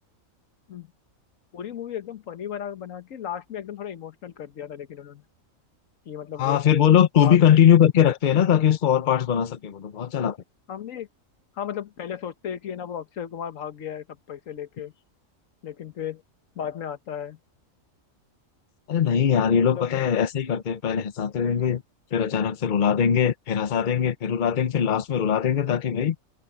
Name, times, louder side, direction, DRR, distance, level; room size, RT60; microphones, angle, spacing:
voice 1, 1.5-5.2 6.1-6.6 7.2-7.4 10.7-11.1 11.6-14.9 15.6-16.2 16.5-17.4 19.5-19.9, left 9 dB, 75° left, 1.5 m, -35 dB
voice 2, 6.4-10.4 18.9-21.8 22.1-26.1, left 9 dB, 45° left, 0.8 m, -21 dB
omnidirectional pair, 1.4 m